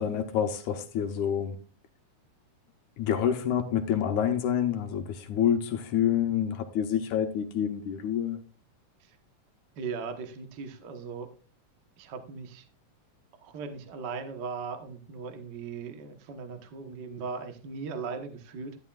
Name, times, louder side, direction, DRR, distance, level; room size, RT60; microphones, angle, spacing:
voice 1, 0.0-1.6 3.0-8.4, left 9 dB, 75° left, 2.2 m, -27 dB
voice 2, 9.8-11.3 12.0-12.7 13.4-18.8, right 5 dB, 60° right, 1.1 m, -38 dB
13.0 x 11.0 x 2.4 m
omnidirectional pair, 3.6 m